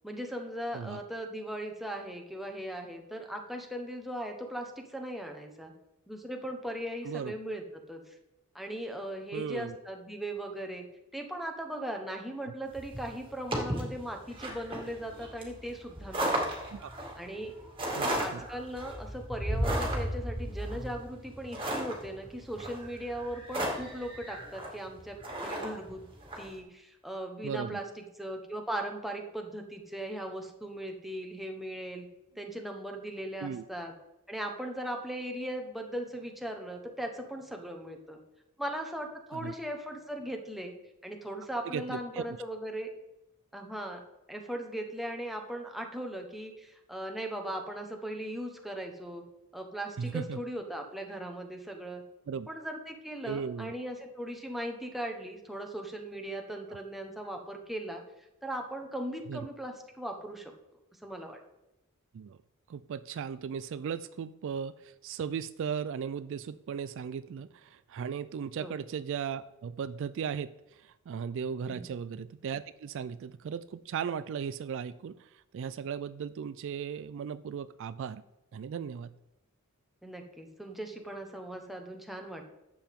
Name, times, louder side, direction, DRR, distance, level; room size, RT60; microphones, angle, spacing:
voice 1, 0.0-5.7 6.1-7.6 7.9-8.0 8.5-10.8 11.1-16.5 17.2-17.5 17.9-26.1 26.4-32.1 32.4-33.9 34.3-38.2 38.6-40.7 41.0-42.9 43.5-44.0 44.3-49.2 49.5-52.0 52.5-58.0 58.4-60.5 61.0-61.4 68.6-68.8 71.7-71.9 80.0-82.4, right 1 dB, ahead, 2 dB, 1.2 m, -38 dB
voice 2, 9.3-9.7 12.4-12.5 16.7-16.9 18.0-18.4 27.4-27.8 33.4-33.6 39.3-39.5 41.6-42.2 50.0-50.4 52.3-52.5 53.2-53.7 59.3-59.4 62.1-62.4 62.7-78.2 78.5-79.1, right 7 dB, 60° right, 14 dB, 0.3 m, -37 dB
sound 1, 12.7-26.5, right 1 dB, 25° right, 2.3 m, -35 dB
11.0 x 7.7 x 3.7 m, 0.93 s
head